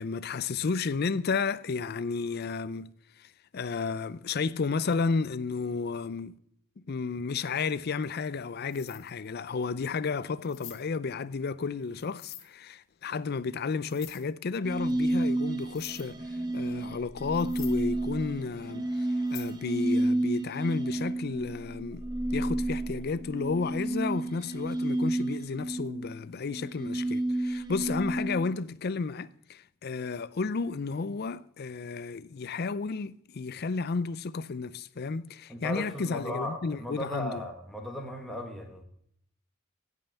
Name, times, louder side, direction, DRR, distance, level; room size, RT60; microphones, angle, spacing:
voice 1, 0.0-2.9 3.2-6.4 6.9-22.0 22.3-37.5, left 4 dB, 50° left, 0.5 m, -32 dB
sound 1, 8.2-8.4 8.7-9.1 9.6-9.7 10.4-10.8 12.0-12.5 13.8-14.2 15.2-15.3 15.6-16.0 16.9-17.0 17.3-17.8 19.3-19.5, left 12 dB, 85° left, 1.5 m, -46 dB
sound 2, 14.6-28.6, right 1 dB, 20° right, 1.0 m, -31 dB
voice 2, 35.5-38.8, left 1 dB, ahead, 1.3 m, -36 dB
16.5 x 5.5 x 7.0 m
head